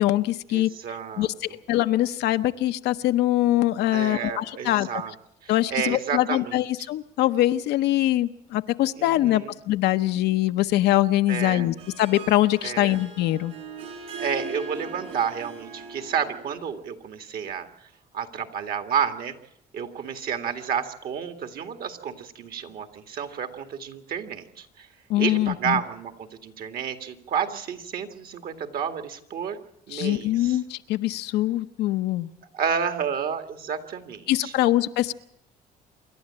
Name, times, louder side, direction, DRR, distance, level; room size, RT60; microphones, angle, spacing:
voice 1, 0.0-0.7 1.2-4.9 5.5-13.5 25.1-25.8 29.9-32.3 34.3-35.1, left 15 dB, 85° left, 9 dB, 0.8 m, -23 dB
voice 2, 0.5-1.3 3.9-5.1 5.4-6.6 9.0-9.5 11.3-11.7 12.6-13.0 14.2-17.7 18.1-19.3 19.7-24.9 25.2-29.6 29.9-30.6 32.5-34.5, right 7 dB, 60° right, 7 dB, 2.1 m, -30 dB
Harp, 11.5-16.7, right 3 dB, 90° right, 6.7 m, -39 dB
26.5 x 11.5 x 8.8 m, 0.77 s
cardioid pair, 110°, 17 cm